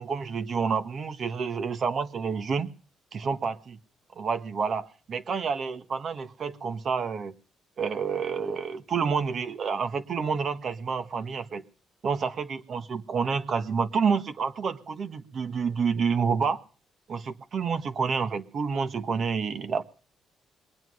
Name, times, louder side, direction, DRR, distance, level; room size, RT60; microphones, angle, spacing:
voice 1, 0.0-2.7 3.1-3.8 4.1-7.3 7.8-11.6 12.0-16.6 17.1-19.8, right 5 dB, 55° right, 11 dB, 1.4 m, -29 dB
21.5 x 9.2 x 6.4 m, 0.40 s
cardioid pair, 90°, 0 cm